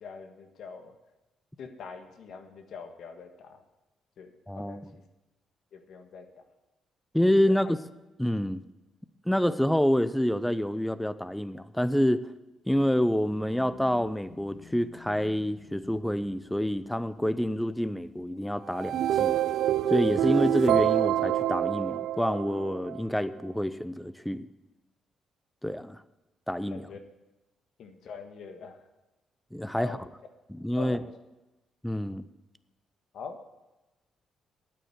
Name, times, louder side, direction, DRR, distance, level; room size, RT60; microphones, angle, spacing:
voice 1, 0.0-0.9 1.6-3.6 4.2-4.8 5.7-6.3 7.4-7.6 26.7-27.0 27.8-28.8 29.7-30.1 30.8-31.1 33.1-33.4, left 5 dB, 70° left, 6 dB, 1.5 m, -43 dB
voice 2, 4.5-4.9 7.1-7.8 8.2-8.6 9.3-12.3 12.7-19.3 19.9-24.5 25.6-26.0 26.5-26.8 29.5-30.0 30.5-31.0 31.8-32.3, equal, 5° left, 14 dB, 0.6 m, -27 dB
sound 1, 12.9-18.2, left 3 dB, 40° left, 2.3 m, -52 dB
sound 2, 18.7-23.0, right 12 dB, 80° right, 0.4 m, -26 dB
9.4 x 8.7 x 8.6 m, 1.0 s
cardioid pair, 90°, 0 cm